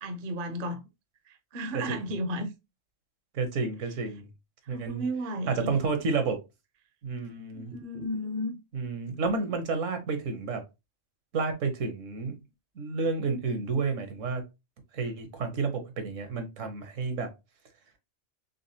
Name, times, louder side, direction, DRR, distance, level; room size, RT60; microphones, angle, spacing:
voice 1, 0.0-0.8 1.3-2.5 4.7-5.8 7.5-8.6, equal, 50° right, 0.7 m, -33 dB
voice 2, 1.7-2.1 3.3-4.3 4.7-5.0 5.5-6.4 7.0-7.7 8.7-10.6 11.3-12.4 12.8-14.4 14.9-17.3, right 4 dB, 75° right, 1.2 m, -30 dB
4.0 x 3.4 x 2.7 m
omnidirectional pair, 1.4 m